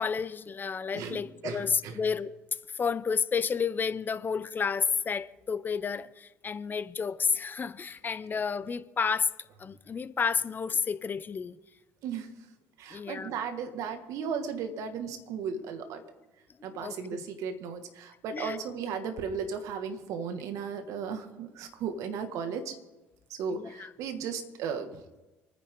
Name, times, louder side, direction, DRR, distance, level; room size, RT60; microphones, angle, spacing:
voice 1, 0.0-2.3 2.7-9.3 9.6-11.6 12.9-13.4 16.7-16.9 18.3-18.6 23.5-23.9, left 6 dB, 35° left, 14 dB, 1.0 m, -31 dB
voice 2, 0.9-2.0 12.0-12.3 12.8-16.0 16.6-22.8 23.3-25.0, right 6 dB, 65° right, 7 dB, 2.2 m, -35 dB
27.5 x 10.0 x 3.9 m, 1.1 s
hypercardioid pair, 70°, 6 cm